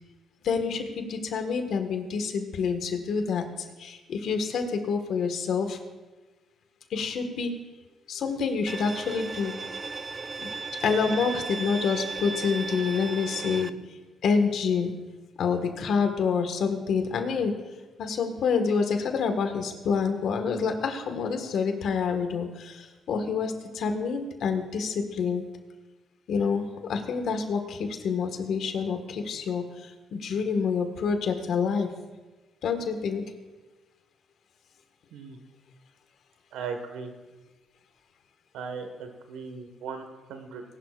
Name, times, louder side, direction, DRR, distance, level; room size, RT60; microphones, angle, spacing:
voice 1, 0.4-5.8 6.9-7.5 8.1-9.5 10.4-10.5 10.8-13.7 14.2-14.9 15.4-17.5 18.0-25.4 26.3-31.9 32.6-33.2, left 5 dB, 70° left, 6 dB, 1.6 m, -27 dB
Bowed string instrument, 8.7-13.7, right 4 dB, 30° right, 0.5 m, -35 dB
voice 2, 36.5-37.1 38.5-40.6, right 5 dB, 90° right, 6 dB, 1.6 m, -37 dB
20.5 x 11.5 x 2.5 m, 1.2 s
cardioid pair, 90°, 0 cm